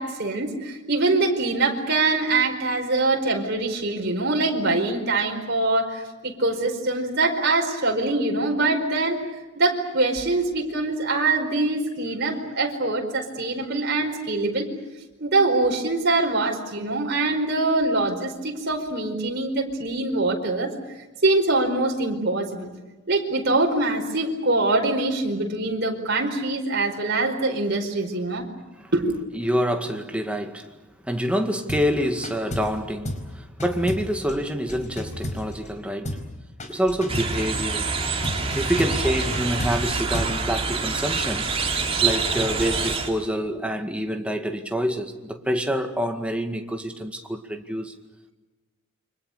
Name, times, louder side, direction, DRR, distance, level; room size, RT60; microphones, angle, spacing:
voice 1, 0.0-9.2 9.5-14.7 15.2-20.7 21.2-22.7 23.1-28.5 28.9-29.2, right 2 dB, 55° right, 4.8 m, -23 dB
voice 2, 29.3-30.7 31.0-36.2 36.7-38.0 38.6-41.5 42.0-47.9, equal, 5° right, 2.1 m, -27 dB
sound 1, 31.7-31.9 32.2-32.8 33.0-33.3 33.6-35.8 36.0-36.3 36.6-37.4 38.2-40.4, left 1 dB, 35° left, 4.7 m, -32 dB
sound 2, 37.1-43.1, right 4 dB, 30° right, 3.0 m, -26 dB
29.5 x 25.0 x 6.6 m
head